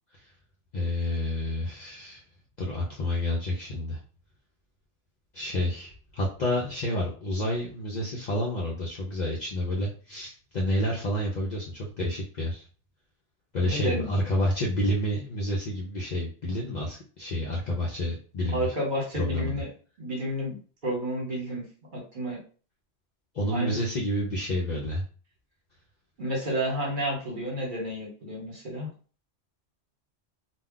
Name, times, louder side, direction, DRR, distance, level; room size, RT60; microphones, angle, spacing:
voice 1, 0.7-2.2 2.6-4.0 5.3-12.6 13.5-18.7 19.2-19.6 23.3-25.0, left 1 dB, 50° left, -3 dB, 0.5 m, -29 dB
voice 2, 13.6-14.1 18.5-19.7 20.0-20.5 20.8-21.7 21.9-22.4 23.5-23.8 26.2-28.9, equal, 45° right, -3 dB, 1.2 m, -30 dB
2.2 x 2.2 x 3.6 m, 0.39 s
omnidirectional pair, 1.2 m